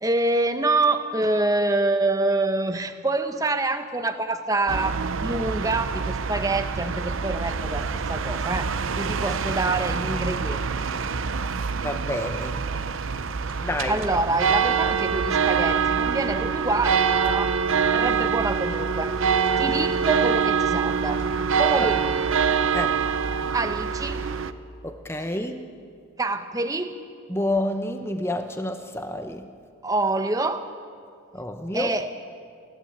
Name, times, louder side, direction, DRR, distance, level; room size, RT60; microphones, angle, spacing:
voice 1, 0.0-5.0 5.2-10.6 13.5-17.5 17.9-21.2 21.6-22.2 23.5-24.2 26.2-26.9 29.8-30.7 31.7-32.1, right 2 dB, 15° right, 8 dB, 0.9 m, -26 dB
sound 1, 4.7-24.5, right 6 dB, 70° right, 0.7 m, -25 dB
sound 2, 11.4-11.6 12.1-12.3 12.7-12.9 13.4-13.6 14.3-14.4 14.9-15.1 15.6-15.8 16.3-16.5 17.2-17.4 18.0-18.2 18.7-18.9 19.4-19.6 20.3-20.6 21.1-21.4 21.8-22.0 22.6-22.8, left 1 dB, 65° left, 2.0 m, -50 dB
voice 2, 11.8-12.6 13.6-14.0 22.7-23.0 24.8-25.6 27.3-29.5 31.3-31.9, left 1 dB, 10° left, 7 dB, 0.8 m, -29 dB
Motorcycle / Idling, 14.9-22.0, equal, 35° right, 2.8 m, -50 dB
29.5 x 12.0 x 8.6 m, 2.3 s
head